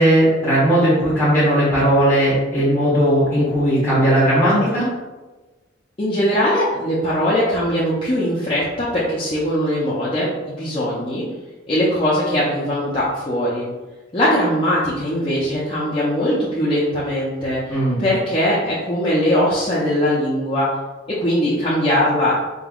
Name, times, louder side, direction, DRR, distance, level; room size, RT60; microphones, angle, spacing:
voice 1, 0.0-4.9 17.7-18.0, right 1 dB, 15° left, -13 dB, 1.3 m, -17 dB
voice 2, 6.0-11.2 11.7-13.7 14.1-20.7 21.1-22.4, equal, 30° left, -8 dB, 0.7 m, -20 dB
5.3 x 2.9 x 2.4 m, 1.2 s
head